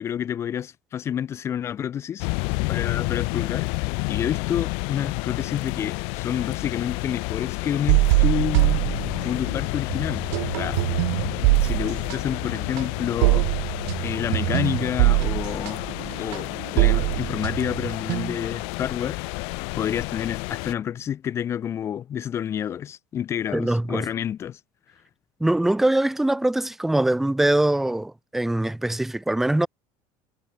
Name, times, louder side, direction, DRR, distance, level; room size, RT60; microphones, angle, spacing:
voice 1, 0.0-2.3 2.7-3.7 4.1-8.8 9.2-10.3 10.5-10.8 11.6-13.5 14.0-15.8 16.2-19.2 19.8-24.6, left 9 dB, 25° left, 0.8 m, -29 dB
sound 1, 2.2-20.7, left 36 dB, 60° left, 0.4 m, -30 dB
sound 2, 7.9-9.6 9.9-18.6, right 40 dB or more, 70° right, 0.6 m, -23 dB
voice 2, 23.5-24.1 25.4-29.7, right 1 dB, 5° right, 0.4 m, -22 dB
cardioid pair, 175°, 11 cm